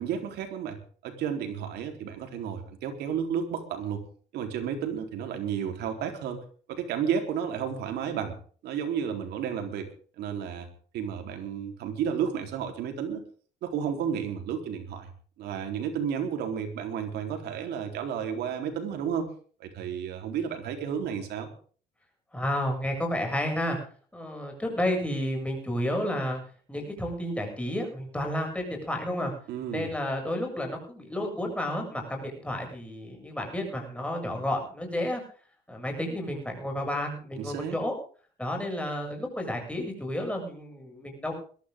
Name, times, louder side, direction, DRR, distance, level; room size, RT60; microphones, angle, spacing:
voice 1, 0.0-4.0 4.3-6.4 6.7-8.4 8.6-9.9 10.2-10.7 10.9-13.2 13.6-15.1 15.4-19.3 19.6-21.5 29.5-29.9 37.4-37.8, right 8 dB, 75° right, 4 dB, 4.0 m, -32 dB
voice 2, 22.3-23.8 24.1-26.4 26.7-29.3 29.7-35.2 35.7-37.9 38.4-41.3, left 1 dB, 5° left, 2 dB, 7.4 m, -31 dB
21.5 x 13.0 x 3.8 m, 0.43 s
cardioid pair, 110°, 17 cm